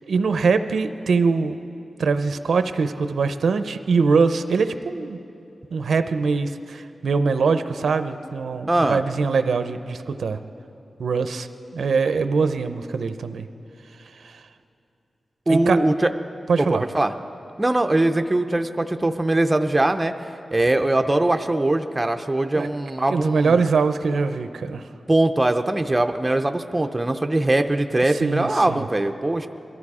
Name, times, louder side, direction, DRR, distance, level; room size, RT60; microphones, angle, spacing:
voice 1, 0.1-1.6 2.0-5.2 5.7-10.4 11.0-11.5 11.7-13.5 14.2-14.4 15.5-15.8 16.5-16.8 22.5-22.7 23.1-24.8 28.2-28.9, right 4 dB, 85° right, 10 dB, 0.6 m, -22 dB
voice 2, 8.7-9.0 15.5-16.1 16.6-17.1 17.6-20.1 20.5-23.6 25.1-29.5, right 2 dB, 15° right, 6 dB, 0.5 m, -21 dB
22.0 x 13.0 x 4.9 m, 2.8 s
wide cardioid pair, 170°, 0 cm